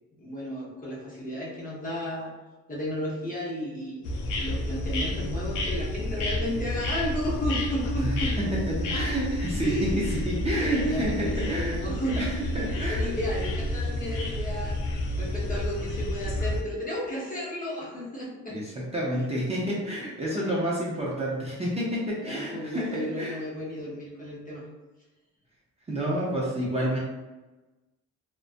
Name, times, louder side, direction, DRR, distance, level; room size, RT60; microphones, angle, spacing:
voice 1, 0.2-2.3 2.7-4.1 4.4-8.3 8.9-9.2 9.6-10.0 10.5-12.2 12.7-14.8 15.2-18.6 19.1-19.3 20.2-20.5 22.2-24.6, equal, 30° left, -5 dB, 0.8 m, -33 dB
sound 1, 4.0-16.6, left 1 dB, 85° left, 0.5 m, -30 dB
voice 2, 8.0-11.8 12.2-13.1 18.5-23.4 25.9-27.0, right 1 dB, 20° right, -6 dB, 0.6 m, -29 dB
2.4 x 2.2 x 2.5 m, 1.1 s
cardioid pair, 90°, 30 cm